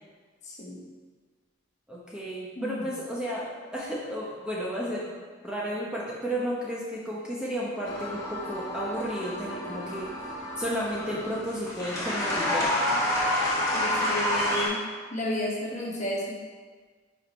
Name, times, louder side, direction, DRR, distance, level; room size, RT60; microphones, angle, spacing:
voice 1, 0.4-0.8 2.6-2.8 13.7-14.8 15.1-16.2, left 1 dB, 35° left, -3 dB, 1.2 m, -32 dB
voice 2, 1.9-5.1 5.4-10.1 10.6-12.7, equal, 5° right, -6 dB, 0.8 m, -33 dB
sound 1, 7.8-14.7, left 1 dB, 15° left, 1.5 m, -29 dB
5.6 x 4.6 x 5.3 m, 1.5 s
head